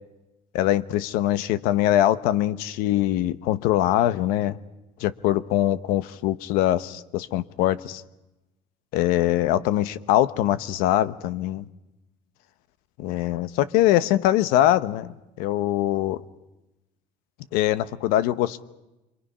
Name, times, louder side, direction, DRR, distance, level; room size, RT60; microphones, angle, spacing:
voice 1, 0.5-4.6 5.0-8.0 8.9-11.6 13.0-16.2 17.5-18.6, left 13 dB, 80° left, 15 dB, 1.0 m, -23 dB
29.5 x 23.5 x 5.6 m, 1.0 s
cardioid pair, 150°, 15 cm